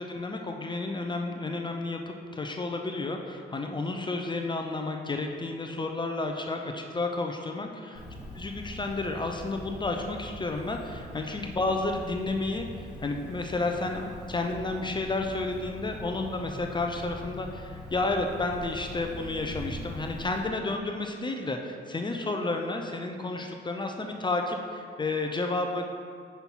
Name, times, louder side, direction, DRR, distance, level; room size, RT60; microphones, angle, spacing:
voice 1, 0.0-8.0 8.4-12.7 13.0-25.9, left 2 dB, 25° left, 3 dB, 0.6 m, -31 dB
Cricket, 7.9-20.4, equal, 5° right, 1.4 m, -43 dB
5.6 x 5.3 x 4.5 m, 2.3 s
cardioid pair, 90°, 20 cm